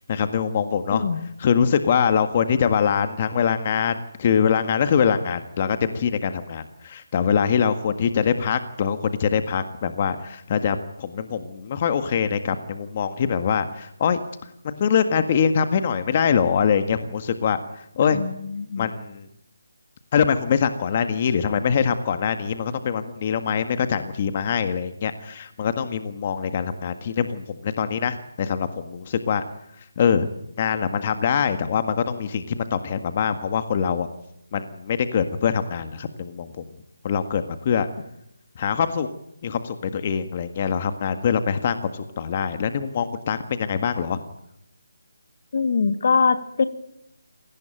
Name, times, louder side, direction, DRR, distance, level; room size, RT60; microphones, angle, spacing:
voice 1, 0.1-1.0 1.4-14.2 14.6-17.6 18.0-18.2 18.8-19.2 20.1-29.4 30.0-30.3 30.6-34.1 34.5-36.6 37.0-37.9 38.6-39.1 39.4-44.2, left 7 dB, 30° left, 9 dB, 1.7 m, -23 dB
voice 2, 0.9-1.3 18.1-18.9 45.5-46.6, left 5 dB, 50° left, 11 dB, 1.9 m, -23 dB
27.0 x 18.5 x 9.1 m, 0.79 s
figure-of-eight pair, 165°, 0 cm